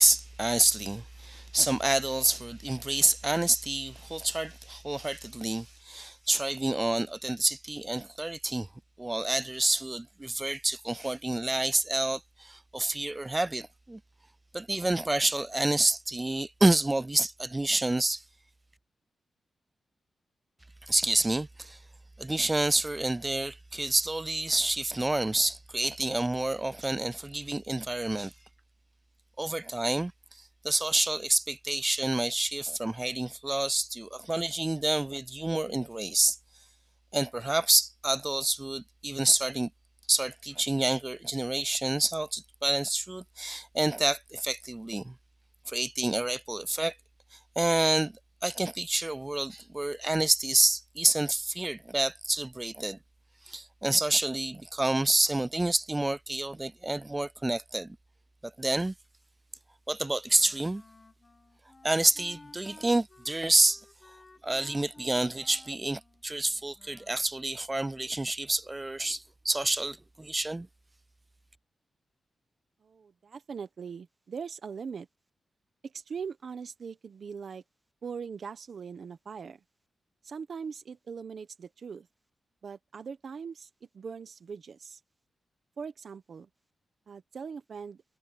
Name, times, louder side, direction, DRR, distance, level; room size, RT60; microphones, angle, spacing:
voice 1, 0.0-8.7 9.0-14.0 14.5-18.2 20.8-21.8 22.2-28.3 29.4-30.1 30.6-36.4 37.1-39.7 40.1-45.1 45.7-47.0 47.3-53.0 53.5-58.0 58.4-58.9 59.9-60.8 61.8-63.8 64.4-70.7, right 2 dB, 15° right, 0.3 m, -28 dB
Wind instrument woodwind instrument, 60.2-67.3, left 3 dB, 25° left, 1.4 m, -55 dB
voice 2, 72.8-75.1 75.8-77.6 78.0-79.6 80.2-82.1 82.6-83.7 83.9-85.0 85.8-86.5 87.1-88.0, right 6 dB, 50° right, 1.0 m, -41 dB
wide cardioid pair, 155°, 0 cm